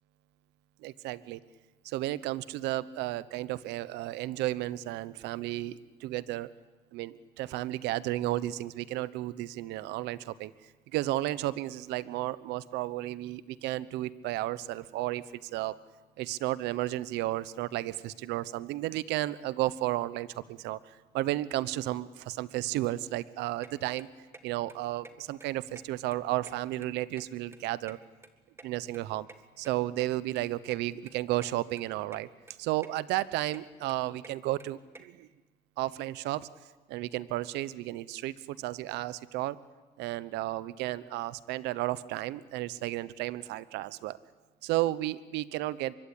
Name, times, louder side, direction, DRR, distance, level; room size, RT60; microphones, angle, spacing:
voice 1, 0.8-1.4 1.8-6.5 6.9-10.5 10.9-15.8 16.2-24.1 24.4-28.0 28.6-29.3 29.6-32.3 32.6-35.3 35.8-36.5 36.9-39.6 40.0-44.2 44.6-45.9, right 16 dB, 90° right, 17 dB, 0.9 m, -33 dB
sound 1, 23.6-23.7 24.0-24.4 24.7-24.8 25.0-25.1 25.4-26.2 26.4-27.6 27.9-29.4 29.6-29.7 30.0-30.1 30.4-30.5 30.7-30.8 31.1-31.5 31.8-32.2 32.5-32.9 33.2-35.0, right 3 dB, 15° right, 2.1 m, -50 dB
24.5 x 23.5 x 10.0 m, 1.2 s
cardioid pair, 110°, 17 cm